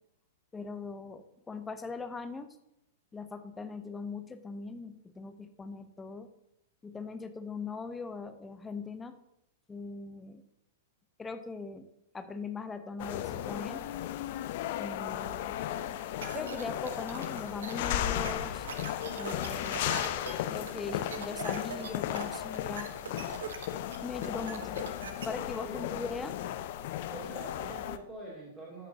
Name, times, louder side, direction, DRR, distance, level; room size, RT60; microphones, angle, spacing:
voice 1, 0.5-2.6 3.1-6.3 6.8-9.2 9.7-10.4 11.2-11.9 12.1-13.9 14.8-15.6 16.3-18.7 19.2-20.1 20.5-22.9 24.0-24.8 25.3-26.4, left 4 dB, 10° left, 9 dB, 0.7 m, -40 dB
sound 1, 13.0-28.0, left 12 dB, 50° left, 0.5 m, -35 dB
sound 2, 16.2-25.3, right 5 dB, 65° right, 1.0 m, -42 dB
voice 2, 19.6-20.3 25.6-26.0 27.1-28.9, right 1 dB, 20° right, -6 dB, 2.9 m, -45 dB
14.5 x 6.2 x 2.8 m, 0.84 s
figure-of-eight pair, 100°, 0 cm